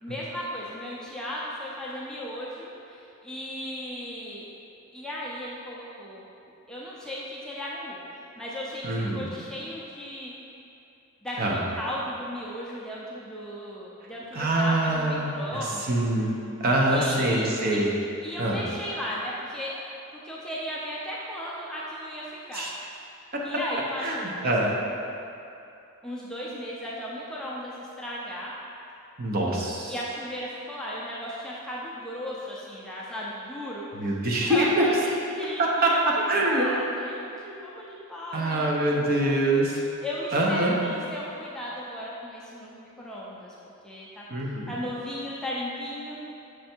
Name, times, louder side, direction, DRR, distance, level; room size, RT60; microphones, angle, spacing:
voice 1, 0.0-4.4 4.9-6.3 6.7-10.3 11.2-16.0 16.9-17.9 18.2-19.9 20.2-22.7 23.4-24.7 26.0-28.5 29.9-33.8 34.4-39.6 40.0-43.5 43.8-46.2, equal, 5° left, -6 dB, 0.5 m, -36 dB
voice 2, 8.8-9.3 11.4-11.6 14.3-15.3 15.5-16.3 16.6-17.9 18.4-18.6 22.5-22.7 24.0-24.7 29.2-29.9 34.0-34.8 35.8-35.9 36.3-36.7 38.3-39.8 40.3-40.7 44.3-44.7, right 1 dB, 40° right, -2 dB, 0.7 m, -24 dB
6.4 x 3.3 x 4.4 m, 2.6 s
head